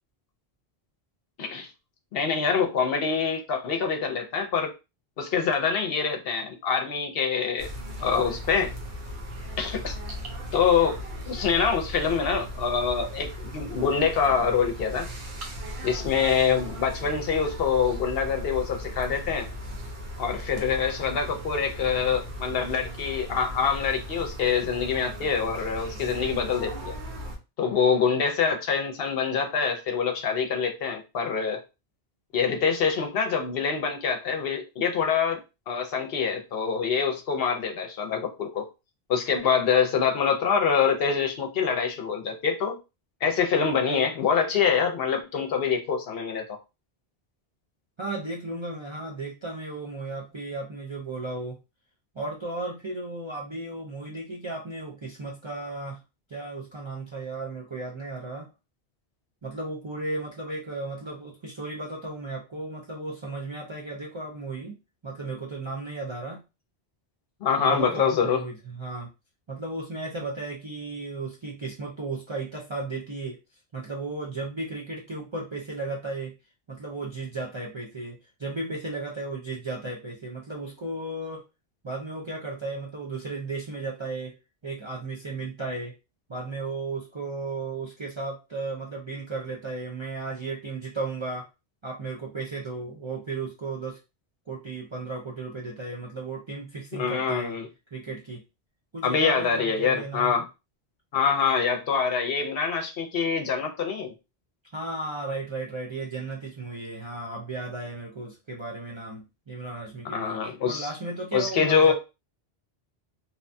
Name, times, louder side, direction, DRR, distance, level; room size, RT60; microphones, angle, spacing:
voice 1, 2.1-4.7 5.2-7.7 8.0-8.7 9.6-9.9 10.5-11.0 11.3-15.1 15.8-19.5 20.2-27.0 27.6-31.6 32.3-35.4 35.7-38.6 39.1-42.8 43.2-46.5 67.4-68.4 96.9-97.7 99.0-100.5 101.1-104.1 110.1-110.9 111.3-111.9, left 6 dB, 70° left, 4 dB, 0.8 m, -25 dB
sound 1, 7.6-27.4, equal, 65° right, 0.9 m, -37 dB
voice 2, 48.0-51.6 52.1-56.0 56.3-58.5 59.4-64.8 65.0-66.4 67.6-69.1 69.5-73.4 73.7-76.3 76.7-81.4 81.8-84.3 84.6-85.9 86.3-91.5 91.8-94.0 94.5-97.6 97.9-98.4 98.9-100.3 104.7-111.9, right 3 dB, 40° right, -2 dB, 0.4 m, -35 dB
2.8 x 2.2 x 2.5 m, 0.27 s
omnidirectional pair, 1.1 m